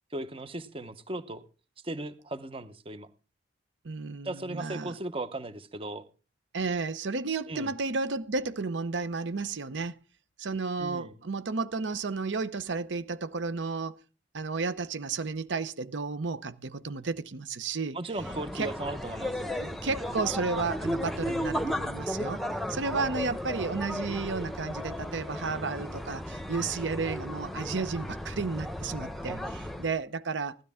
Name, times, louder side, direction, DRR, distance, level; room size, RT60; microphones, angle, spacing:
voice 1, 0.1-1.4 1.8-3.1 4.2-6.1 7.5-7.7 10.8-11.1 17.9-19.5, right 2 dB, 30° right, 0.8 m, -37 dB
voice 2, 3.8-5.0 6.5-9.9 10.4-14.0 14.3-18.0 18.5-18.7 19.5-22.4 22.7-30.6, right 4 dB, 85° right, 0.7 m, -32 dB
sound 1, 18.1-29.9, equal, ahead, 1.0 m, -35 dB
16.5 x 12.5 x 3.6 m
head